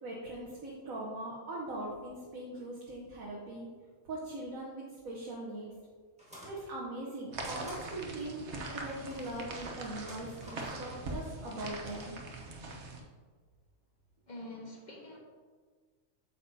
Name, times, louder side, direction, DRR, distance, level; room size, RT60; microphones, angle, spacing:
voice 1, 0.0-3.7 4.0-5.7 6.4-12.2, right 1 dB, 85° right, -4 dB, 1.5 m, -41 dB
sound 1, 6.2-6.6 7.4-7.8 8.8-9.4 9.9-10.7, equal, 5° right, 1.6 m, -50 dB
sound 2, 7.3-13.0, right 2 dB, 60° right, 1.2 m, -42 dB
voice 2, 14.3-15.2, left 1 dB, 35° left, -2 dB, 1.5 m, -45 dB
8.2 x 7.3 x 2.8 m, 1.5 s
omnidirectional pair, 1.4 m